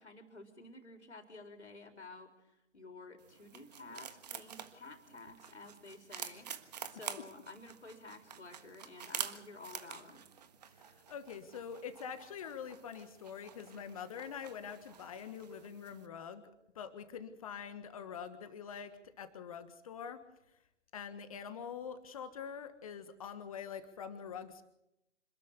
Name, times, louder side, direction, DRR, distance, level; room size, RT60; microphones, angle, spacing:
voice 1, 0.0-6.5 6.9-10.2, left 3 dB, 70° left, 5 dB, 4.2 m, -52 dB
sound 1, 3.2-16.1, right 8 dB, 35° right, 1.5 m, -48 dB
voice 2, 10.8-16.4 16.7-20.2 20.9-24.6, left 7 dB, 30° left, 10 dB, 1.5 m, -45 dB
26.5 x 13.5 x 8.2 m, 0.85 s
figure-of-eight pair, 140°, 35 cm